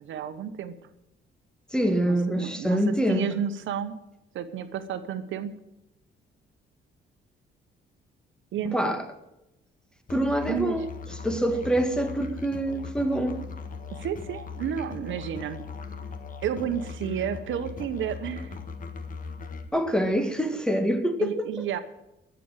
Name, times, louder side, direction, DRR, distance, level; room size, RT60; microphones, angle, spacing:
voice 1, 0.0-0.8 1.9-4.0 4.3-5.5 8.5-9.0 10.5-10.9 13.9-15.6 16.4-18.6 21.2-21.8, right 8 dB, 75° right, 1.0 m, -31 dB
voice 2, 1.7-3.3 8.7-9.0 10.1-10.9 11.2-13.4 19.7-21.7, right 1 dB, 5° left, 1.6 m, -25 dB
Musical instrument, 10.1-19.7, left 5 dB, 45° left, 1.5 m, -39 dB
14.0 x 7.0 x 8.9 m
cardioid pair, 90°, 20 cm